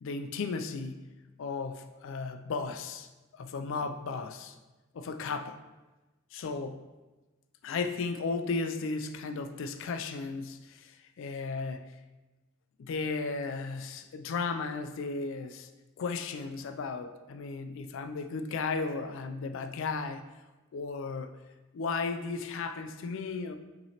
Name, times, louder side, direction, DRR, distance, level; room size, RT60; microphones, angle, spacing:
voice 1, 0.0-1.0 1.4-3.1 3.3-4.6 4.9-5.6 6.3-6.9 7.6-12.0 12.8-15.7 16.0-20.3 20.7-21.3 21.7-23.5, left 4 dB, 60° left, 8 dB, 0.3 m, -35 dB
5.7 x 3.0 x 2.8 m, 1.1 s
head